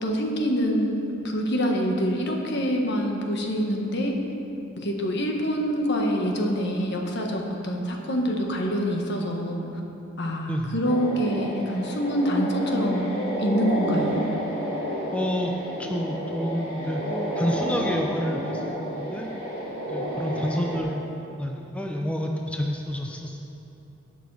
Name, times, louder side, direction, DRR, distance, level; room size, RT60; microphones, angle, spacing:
voice 1, 0.0-4.1 4.8-9.6 10.2-14.2, equal, 60° left, 1 dB, 1.4 m, -26 dB
sound 1, 10.8-20.8, equal, 30° left, 2.3 m, -31 dB
voice 2, 15.1-15.5 15.8-17.0 17.4-19.3 19.9-21.0 21.3-23.4, equal, 5° left, 1 dB, 0.6 m, -29 dB
17.5 x 6.1 x 4.8 m, 2.9 s
head